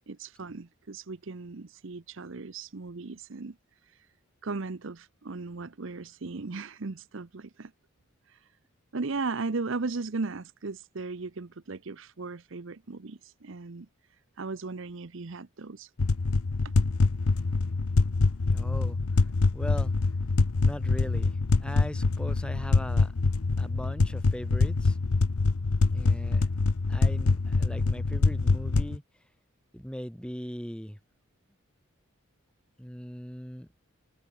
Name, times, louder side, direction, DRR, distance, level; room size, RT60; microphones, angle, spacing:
voice 1, 0.1-3.6 4.4-7.7 8.3-8.4 8.9-13.9 14.4-15.9, right 3 dB, 55° right, 0.7 m, -36 dB
sound 1, 16.0-29.0, left 3 dB, 75° left, 0.8 m, -25 dB
voice 2, 18.4-19.9 20.6-23.1 23.6-25.0 25.9-26.5 26.9-29.0 29.7-31.0 32.8-33.7, equal, 5° left, 2.1 m, -39 dB
head